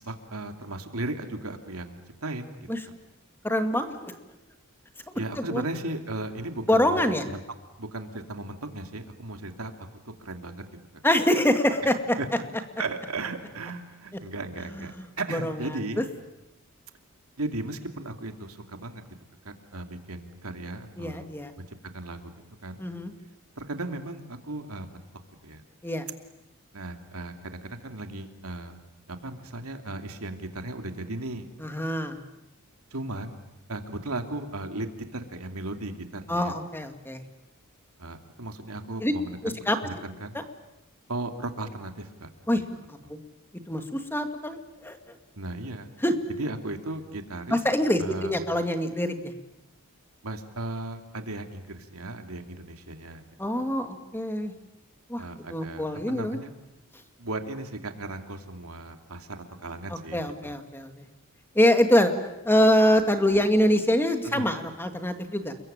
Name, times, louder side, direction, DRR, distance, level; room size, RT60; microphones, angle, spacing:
voice 1, 0.0-2.7 5.1-7.0 7.3-7.4 7.8-9.7 10.2-10.6 12.2-12.3 12.8-16.0 17.4-19.1 19.4-21.2 21.6-21.7 21.9-22.3 22.6-22.8 23.6-25.0 25.4-25.6 26.7-28.8 29.1-31.5 32.9-33.3 33.7-36.6 38.0-40.4 41.1-42.3 45.4-45.9 46.4-47.6 48.0-48.3 50.2-53.2 53.5-53.6 55.2-56.5 57.2-60.6 64.2-64.5, right 2 dB, 85° right, 6 dB, 2.7 m, -36 dB
voice 2, 3.4-4.2 5.4-5.6 6.7-7.2 11.0-12.2 14.7-15.0 15.3-16.0 21.0-21.5 22.8-23.1 25.8-26.0 31.6-32.2 36.3-37.2 39.0-39.1 39.4-39.8 40.3-40.4 42.5-42.6 42.9-43.2 43.7-45.0 46.0-46.1 47.5-49.3 53.4-54.5 55.1-55.2 55.5-56.4 59.9-61.1 61.6-62.1 62.4-65.5, left 1 dB, 10° left, 7 dB, 2.1 m, -25 dB
29.5 x 22.5 x 9.0 m, 0.94 s
head